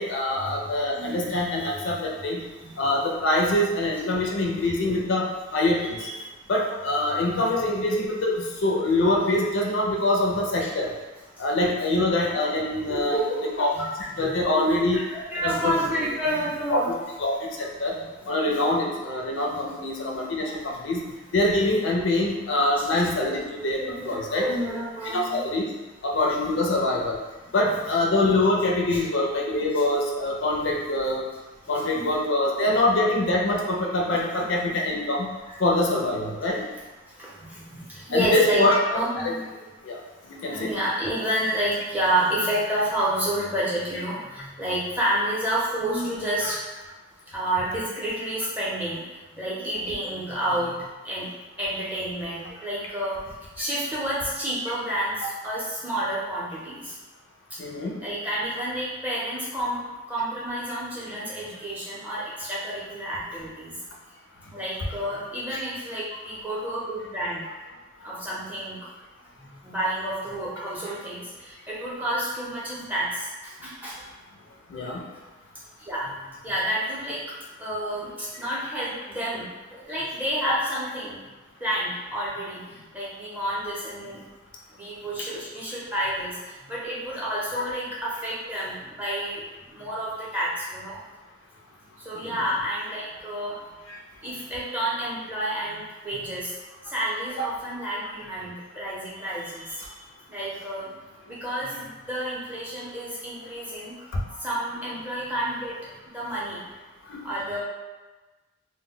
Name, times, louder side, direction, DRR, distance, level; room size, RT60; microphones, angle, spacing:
voice 1, 0.0-2.4 2.8-6.0 6.5-10.9 11.4-13.2 13.6-13.7 14.2-15.0 15.4-16.0 16.7-16.8 17.2-18.0 18.3-24.5 25.1-25.7 26.0-27.2 27.5-31.2 31.7-35.3 35.6-36.6 38.1-38.8 39.2-39.3 39.8-40.0 40.4-40.7 46.4-46.5 57.6-58.0 65.5-65.6 74.7-75.1 85.2-85.3 87.5-87.7 92.1-92.4 93.9-94.0 97.4-97.5 98.8-98.9 104.1-104.2 107.1-107.2, left 1 dB, 65° left, -1 dB, 0.4 m, -24 dB
voice 2, 0.9-2.0 2.6-2.7 3.6-3.7 5.9-6.3 7.4-7.5 10.6-10.7 12.9-13.9 14.1-14.6 14.9-16.9 18.2-18.3 19.5-19.6 23.3-23.4 23.8-25.4 28.9-29.0 29.7-29.8 31.9-32.1 34.4-34.5 35.5-35.6 37.2-39.7 40.5-46.6 47.3-49.0 49.3-50.7 51.0-51.3 51.6-53.2 53.6-56.9 58.0-59.8 60.1-63.7 64.5-67.4 68.0-68.8 69.6-73.2 73.6-74.0 75.8-76.1 76.4-77.2 77.6-81.2 81.6-82.6 82.9-84.2 84.7-86.3 86.7-89.4 89.7-91.0 92.1-93.6 94.2-96.5 96.9-100.0 100.3-100.9 101.3-103.9 104.4-105.7 106.1-106.6 107.2-107.6, right 1 dB, 10° right, -8 dB, 0.6 m, -30 dB
2.1 x 2.1 x 3.6 m, 1.2 s
head